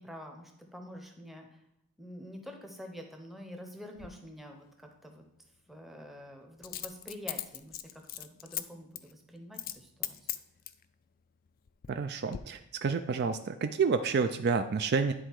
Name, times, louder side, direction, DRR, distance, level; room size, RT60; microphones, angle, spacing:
voice 1, 0.0-1.6 2.0-4.7 5.0-5.2 5.7-7.8 8.2-10.3, equal, ahead, 3 dB, 0.7 m, -47 dB
Coin (dropping), 4.0-4.1 6.6-8.6 8.9-9.1 9.5-9.8 10.0-10.8 11.5-12.0 12.3-12.4, left 13 dB, 40° left, 0.3 m, -38 dB
voice 2, 11.9-15.1, right 5 dB, 45° right, 8 dB, 0.3 m, -29 dB
9.9 x 3.8 x 4.6 m, 0.82 s
head